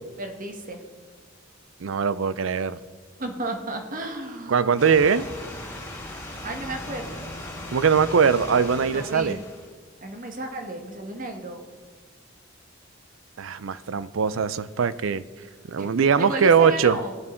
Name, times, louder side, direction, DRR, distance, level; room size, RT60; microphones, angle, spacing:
voice 1, 0.2-0.8 3.2-4.7 6.4-7.3 8.9-9.4 10.0-11.6 15.8-17.1, right 2 dB, 45° right, 4 dB, 1.4 m, -33 dB
voice 2, 1.8-2.8 4.5-5.3 7.7-9.4 13.4-15.2 15.7-17.0, right 6 dB, 80° right, 16 dB, 0.5 m, -21 dB
sound 1, 4.8-9.7, left 1 dB, 15° left, 3.2 m, -37 dB
18.5 x 7.3 x 4.4 m, 1.5 s
head